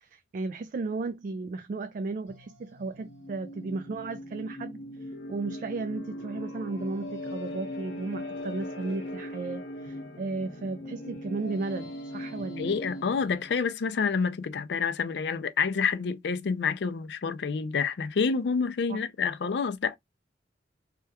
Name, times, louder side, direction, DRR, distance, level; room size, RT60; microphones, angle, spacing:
voice 1, 0.0-4.8 5.3-12.8 18.9-19.0, right 3 dB, 45° right, 0.3 m, -35 dB
sound 1, 2.3-13.7, left 1 dB, 85° left, 0.8 m, -40 dB
voice 2, 12.6-20.0, left 5 dB, 65° left, 0.4 m, -28 dB
3.3 x 2.3 x 2.8 m
head